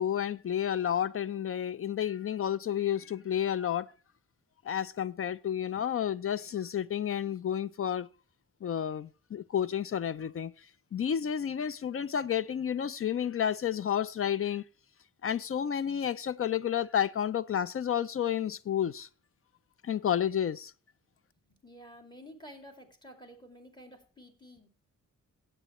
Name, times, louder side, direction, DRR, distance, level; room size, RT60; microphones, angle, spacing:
voice 1, 0.0-3.9 4.6-8.1 8.6-10.5 10.9-14.6 15.2-19.1 19.8-20.7, left 9 dB, 45° left, 0.4 m, -31 dB
voice 2, 21.4-24.7, equal, 15° left, 2.3 m, -51 dB
16.5 x 8.0 x 3.0 m
wide cardioid pair, 135°, 32 cm